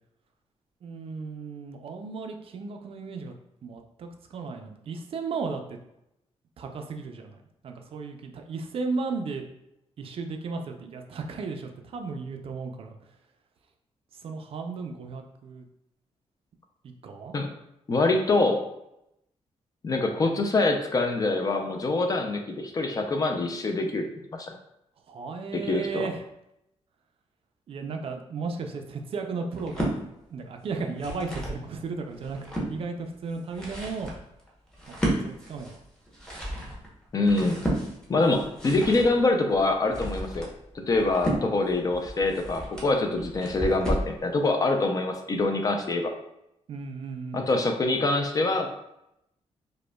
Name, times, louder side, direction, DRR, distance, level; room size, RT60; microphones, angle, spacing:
voice 1, 0.8-3.4 3.6-5.8 6.6-9.4 10.0-12.9 14.1-15.7 16.8-17.3 25.1-26.2 27.7-30.0 30.3-32.4 32.7-34.1 34.9-35.8 46.7-47.5, right 4 dB, 55° right, 4 dB, 0.4 m, -35 dB
voice 2, 17.9-18.6 19.8-24.0 24.3-24.5 25.7-26.1 37.1-37.6 38.1-40.5 40.7-46.1 47.3-48.7, left 2 dB, 30° left, 4 dB, 0.4 m, -25 dB
sound 1, 29.5-30.0 30.7-31.6 32.1-32.7 33.3-44.1, right 1 dB, 5° left, 0.8 m, -33 dB
4.9 x 2.1 x 2.2 m, 0.83 s
wide cardioid pair, 150°, 12 cm